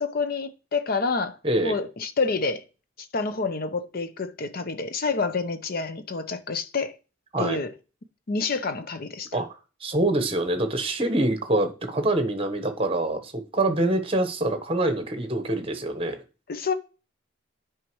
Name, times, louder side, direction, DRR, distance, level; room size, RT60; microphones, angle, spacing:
voice 1, 0.0-1.4 1.6-2.6 3.1-7.0 7.4-7.7 8.3-9.3 16.5-16.7, left 4 dB, 45° left, 0.7 m, -28 dB
voice 2, 1.4-1.8 7.3-7.6 9.3-9.5 9.8-16.2, right 1 dB, 30° right, 1.1 m, -25 dB
9.3 x 4.8 x 3.1 m
head